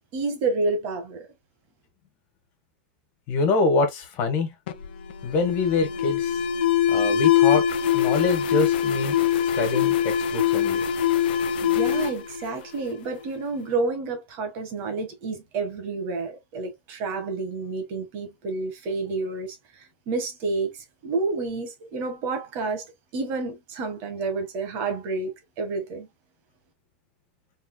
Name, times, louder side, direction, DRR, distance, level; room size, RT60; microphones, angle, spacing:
voice 1, 0.1-1.3 11.6-22.8 23.1-25.3 25.6-26.1, right 3 dB, 40° right, 1.7 m, -29 dB
voice 2, 3.3-4.5 5.2-6.4 6.9-7.6 7.9-9.1 9.5-10.8, left 3 dB, 35° left, 1.7 m, -25 dB
Alarm, 4.7-13.3, left 9 dB, 65° left, 0.9 m, -23 dB
4.6 x 3.8 x 2.3 m
supercardioid pair, 165°, 6 cm